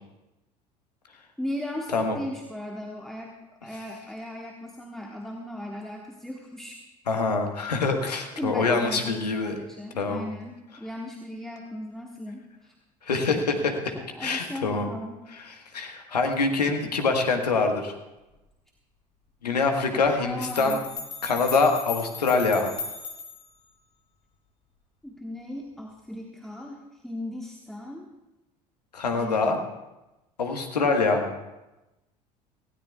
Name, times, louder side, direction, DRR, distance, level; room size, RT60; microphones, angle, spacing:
voice 1, 1.4-3.4 3.6-6.8 8.4-12.7 13.9-15.3 19.9-20.8 25.0-28.1 29.1-29.6, left 1 dB, ahead, 0 dB, 1.4 m, -37 dB
voice 2, 7.1-9.6 10.0-10.3 13.0-13.9 14.2-14.9 15.5-17.9 19.4-20.8 21.2-22.7 28.9-29.6 30.4-31.3, left 4 dB, 80° left, 5 dB, 1.4 m, -25 dB
sound 1, 20.4-23.6, left 4 dB, 35° left, 2.7 m, -37 dB
18.0 x 16.5 x 2.4 m, 1.0 s
figure-of-eight pair, 65°, 20 cm